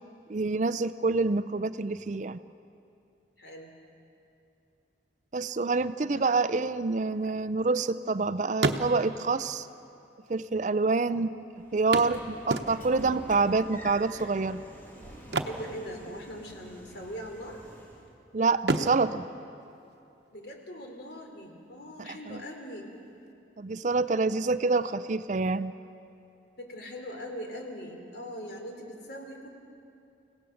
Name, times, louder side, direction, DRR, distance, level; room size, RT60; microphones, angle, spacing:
voice 1, 0.3-2.4 5.3-9.7 10.3-11.5 11.7-14.6 18.3-19.2 22.0-22.4 23.6-25.7, right 3 dB, 40° right, 13 dB, 0.5 m, -27 dB
voice 2, 3.4-3.7 6.1-6.2 15.5-17.6 20.3-22.9 26.6-29.5, equal, 60° left, 2 dB, 3.4 m, -41 dB
sound 1, 6.9-8.2 8.5-9.3 10.3-10.4 10.6-10.7 11.9-13.1 15.2-16.5 16.7-17.0 17.5-18.1 18.6-20.3 22.3-22.4 22.9-23.0, right 2 dB, 65° right, 1.0 m, -32 dB
Train / Sliding door, 11.6-18.1, equal, 10° left, 2.6 m, -47 dB
29.5 x 17.0 x 6.5 m, 2.6 s
head